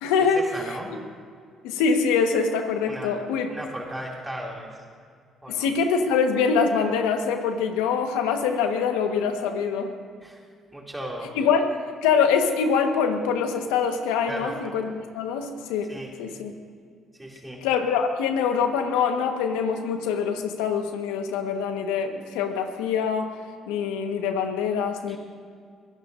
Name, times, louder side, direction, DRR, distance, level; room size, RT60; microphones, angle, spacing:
voice 1, 0.0-0.4 1.6-3.5 5.5-9.9 11.3-11.7 12.0-15.9 16.2-16.5 17.6-23.3 23.7-25.2, left 6 dB, 90° left, 5 dB, 1.4 m, -24 dB
voice 2, 0.5-0.9 2.9-3.1 3.5-4.8 5.4-5.7 10.2-10.4 10.7-11.4 14.3-14.6 15.9-16.1 17.2-17.6 25.1-25.2, right 1 dB, 10° right, -2 dB, 2.8 m, -36 dB
23.0 x 17.0 x 2.7 m, 2.1 s
supercardioid pair, 65°, 0 cm